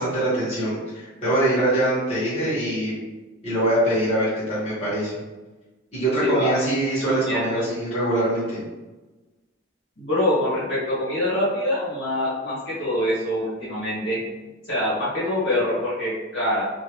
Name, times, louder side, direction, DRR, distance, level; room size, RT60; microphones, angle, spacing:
voice 1, 0.0-2.9 3.4-5.2 5.9-8.6, right 1 dB, 30° left, -11 dB, 1.5 m, -23 dB
voice 2, 7.2-7.6 10.0-14.3 14.6-16.7, left 1 dB, 60° left, -10 dB, 1.4 m, -24 dB
2.9 x 2.7 x 3.0 m, 1.2 s
head